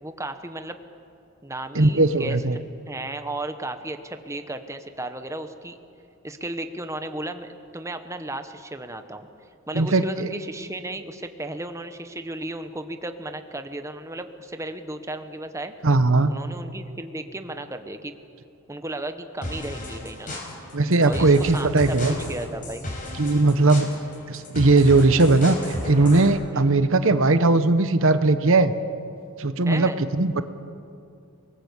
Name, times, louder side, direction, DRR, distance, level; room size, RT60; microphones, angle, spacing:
voice 1, 0.0-0.8 1.4-5.8 6.2-9.3 9.7-15.7 16.3-18.1 18.7-20.5 21.0-22.9 26.5-26.6 29.7-30.0, right 1 dB, 15° right, 8 dB, 1.1 m, -34 dB
voice 2, 1.7-2.6 9.7-10.3 15.8-16.3 20.7-22.2 23.2-23.9 24.3-25.6 25.8-28.7 29.4-30.4, right 2 dB, 60° right, 11 dB, 1.0 m, -19 dB
sound 1, 19.4-26.3, left 1 dB, 40° left, 5.5 m, -34 dB
30.0 x 20.0 x 8.2 m, 2.6 s
head